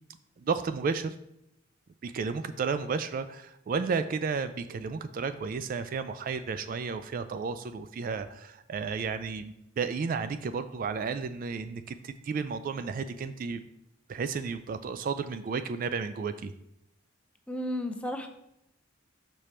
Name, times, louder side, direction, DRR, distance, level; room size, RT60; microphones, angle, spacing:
voice 1, 0.4-1.2 2.0-13.6 14.1-16.5, right 5 dB, 45° right, 11 dB, 0.3 m, -32 dB
voice 2, 17.5-18.3, left 1 dB, 5° left, 5 dB, 0.5 m, -33 dB
6.1 x 5.1 x 4.2 m, 0.81 s
head